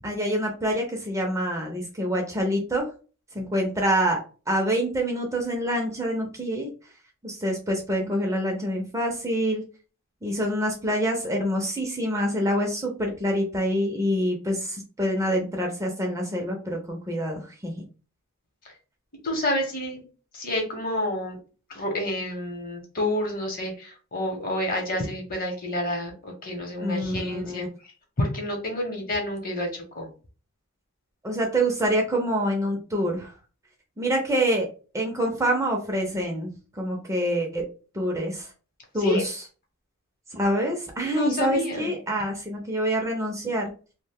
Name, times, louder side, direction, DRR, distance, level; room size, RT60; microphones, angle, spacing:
voice 1, 0.0-2.9 3.3-4.2 4.5-6.7 7.2-9.6 10.2-17.8 26.8-27.7 31.2-33.3 34.0-34.7 34.9-37.6 37.9-38.5 38.9-39.4 40.3-43.7, equal, 15° right, 0 dB, 0.4 m, -26 dB
voice 2, 19.2-20.0 20.3-21.4 21.7-27.6 28.2-30.1 39.0-39.2 41.1-41.9, left 1 dB, 40° left, 2 dB, 0.8 m, -29 dB
2.4 x 2.1 x 3.4 m, 0.36 s
head